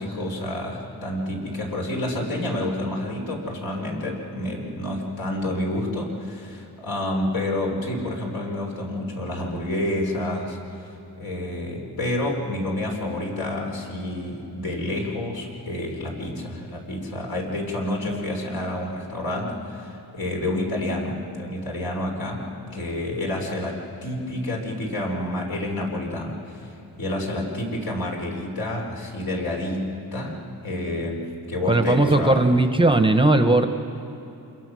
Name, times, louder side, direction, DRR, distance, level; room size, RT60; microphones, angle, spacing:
voice 1, 0.0-10.6 11.2-26.7 27.0-32.5, left 1 dB, 70° left, 0 dB, 4.1 m, -29 dB
voice 2, 31.7-33.7, right 2 dB, 15° right, 7 dB, 0.8 m, -18 dB
27.5 x 22.0 x 6.2 m, 2.9 s
wide cardioid pair, 160°, 37 cm